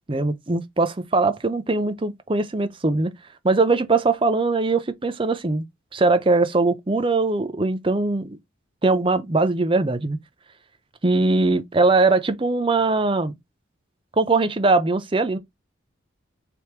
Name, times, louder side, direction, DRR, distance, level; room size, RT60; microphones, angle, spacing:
voice 1, 0.1-3.1 3.4-5.6 5.9-8.4 8.8-10.2 11.0-13.3 14.2-15.4, right 3 dB, 25° right, 0.5 m, -21 dB
3.4 x 3.0 x 4.4 m
head